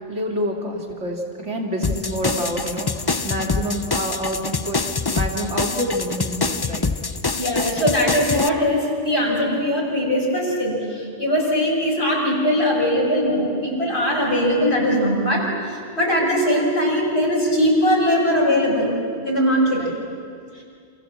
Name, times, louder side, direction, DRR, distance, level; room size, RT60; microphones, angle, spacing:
voice 1, 0.1-2.9 3.2-4.8 5.1-6.9 19.8-19.9, equal, 80° right, 0 dB, 3.3 m, -27 dB
sound 1, 1.8-8.5, left 4 dB, 25° left, 0.5 m, -25 dB
voice 2, 7.4-18.9 19.2-19.8 20.5-20.6, equal, 65° left, -4 dB, 6.3 m, -20 dB
28.5 x 27.0 x 7.5 m, 2.3 s
omnidirectional pair, 1.2 m